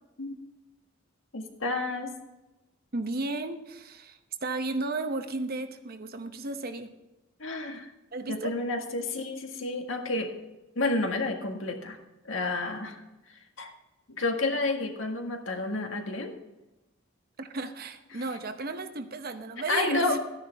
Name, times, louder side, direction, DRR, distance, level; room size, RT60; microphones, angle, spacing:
voice 1, 1.3-2.1 7.4-7.9 8.3-10.3 10.7-12.0 12.2-13.0 13.6-13.7 14.1-16.3 19.7-20.2, left 2 dB, 80° left, 3 dB, 1.7 m, -30 dB
voice 2, 2.9-6.9 8.1-8.5 17.4-20.2, right 3 dB, 50° right, 8 dB, 0.9 m, -34 dB
13.5 x 10.0 x 3.5 m, 1.0 s
head